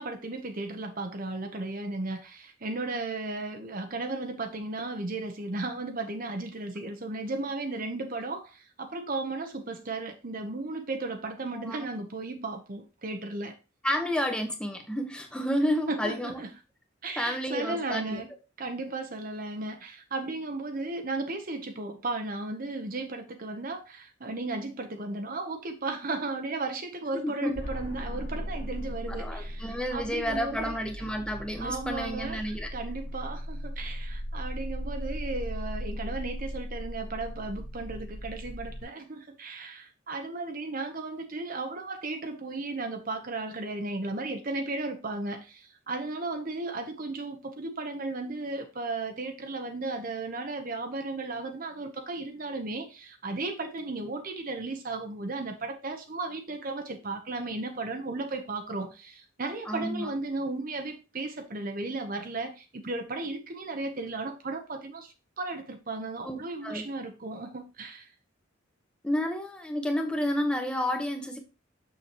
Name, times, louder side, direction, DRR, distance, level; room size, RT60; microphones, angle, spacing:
voice 1, 0.0-13.5 15.9-16.5 17.0-18.3 18.6-31.2 31.6-68.1, right 2 dB, 45° right, 0.9 m, -35 dB
voice 2, 11.5-11.9 13.8-16.4 17.2-18.2 27.1-27.6 29.1-33.0 59.7-60.1 66.2-66.9 69.0-71.4, equal, 5° left, 1.0 m, -31 dB
sound 1, 27.5-38.8, equal, 80° left, 1.8 m, -37 dB
7.0 x 6.6 x 2.9 m
head